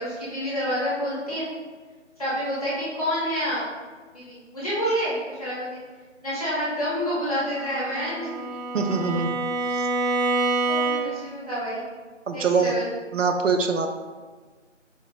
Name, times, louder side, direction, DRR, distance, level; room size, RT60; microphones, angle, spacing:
voice 1, 0.0-1.4 2.2-3.6 4.1-5.7 6.2-8.3 10.3-11.8 12.3-12.9, equal, 30° left, -9 dB, 1.0 m, -28 dB
Bowed string instrument, 7.5-11.3, right 3 dB, 30° right, 0.9 m, -27 dB
voice 2, 8.7-9.3 9.7-9.9 12.3-12.7 13.1-13.9, right 5 dB, 80° right, 5 dB, 0.5 m, -23 dB
4.5 x 2.0 x 2.8 m, 1.4 s
figure-of-eight pair, 160°, 37 cm